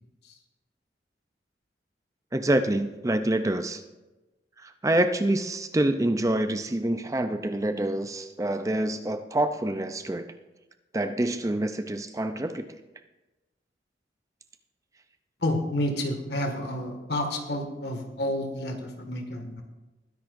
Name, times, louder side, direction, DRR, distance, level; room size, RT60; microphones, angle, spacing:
voice 1, 2.3-3.8 4.6-10.3 10.9-12.6, right 1 dB, 20° right, 8 dB, 0.5 m, -26 dB
voice 2, 15.4-19.6, left 1 dB, 65° left, 4 dB, 1.8 m, -30 dB
21.0 x 10.5 x 2.6 m, 1.1 s
head